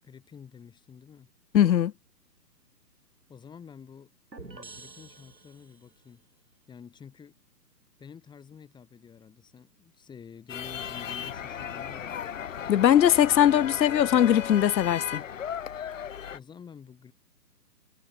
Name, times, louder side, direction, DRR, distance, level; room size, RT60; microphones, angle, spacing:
voice 1, 0.0-1.3 3.3-6.3 6.7-7.4 8.0-12.3 16.3-17.1, left 7 dB, 10° left, 7.1 m, -49 dB
voice 2, 1.5-1.9 12.7-15.2, left 10 dB, 85° left, 0.6 m, -20 dB
sound 1, 4.3-6.0, right 3 dB, 80° right, 4.1 m, -47 dB
sound 2, 10.5-16.4, left 8 dB, 50° left, 1.7 m, -36 dB
figure-of-eight pair, 135°, 50 cm